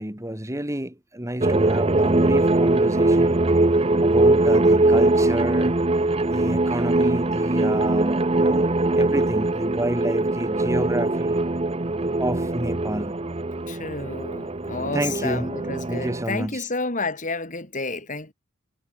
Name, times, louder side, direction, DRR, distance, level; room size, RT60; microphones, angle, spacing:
voice 1, 0.0-3.4 3.8-5.7 6.2-11.4 12.0-13.1 14.9-15.5 15.9-16.7, right 1 dB, 15° right, 2.7 m, -29 dB
sound 1, 1.4-16.2, right 2 dB, 30° right, 1.0 m, -21 dB
voice 2, 13.7-18.3, left 3 dB, 40° left, 6.3 m, -30 dB
head